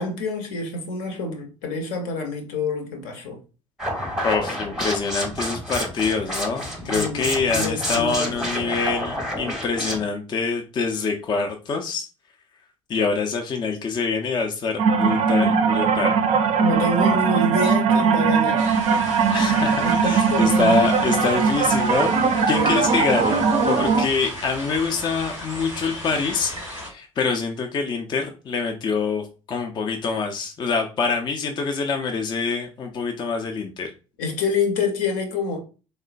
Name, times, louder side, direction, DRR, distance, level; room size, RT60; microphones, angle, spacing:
voice 1, 0.0-3.4 6.8-8.4 16.6-18.7 19.6-20.8 22.6-22.7 34.2-35.6, left 3 dB, 60° left, 0.7 m, -27 dB
sound 1, 3.8-10.0, equal, 5° right, 0.8 m, -29 dB
voice 2, 4.2-12.1 12.9-16.2 19.3-22.2 22.5-26.5 26.9-33.9, left 4 dB, 25° left, 0.4 m, -25 dB
sound 2, 14.8-24.0, right 5 dB, 40° right, 0.4 m, -20 dB
sound 3, 18.6-26.9, left 1 dB, 90° left, 1.0 m, -36 dB
3.1 x 2.1 x 2.4 m
figure-of-eight pair, 55°, 16 cm